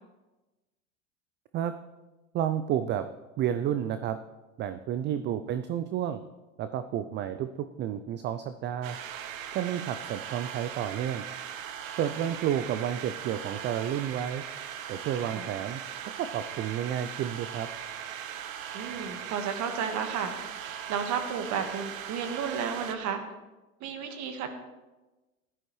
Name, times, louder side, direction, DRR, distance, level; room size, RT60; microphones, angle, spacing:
voice 1, 2.3-3.1 3.4-4.2 4.6-6.2 6.6-9.0 9.5-11.3 12.0-14.4 14.9-15.8 16.2-17.7, right 10 dB, 25° right, 11 dB, 0.4 m, -31 dB
sound 1, 8.8-23.0, right 9 dB, 65° right, 1.0 m, -39 dB
voice 2, 18.7-23.2 23.8-24.5, right 7 dB, 40° right, 7 dB, 1.6 m, -33 dB
15.0 x 11.0 x 3.2 m, 1.1 s
hypercardioid pair, 80°, 42 cm